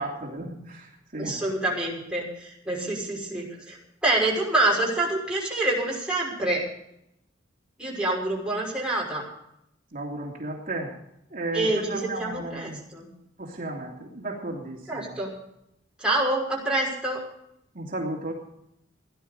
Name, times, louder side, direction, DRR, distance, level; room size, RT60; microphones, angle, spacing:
voice 1, 0.0-1.4 9.9-10.9 11.3-12.8 13.4-15.2 17.7-18.3, right 2 dB, 45° right, -2 dB, 3.1 m, -34 dB
voice 2, 1.2-6.6 7.8-9.2 11.5-13.1 14.9-15.3 16.0-17.2, right 2 dB, 5° right, -4 dB, 5.8 m, -27 dB
18.0 x 11.0 x 5.1 m, 0.80 s
head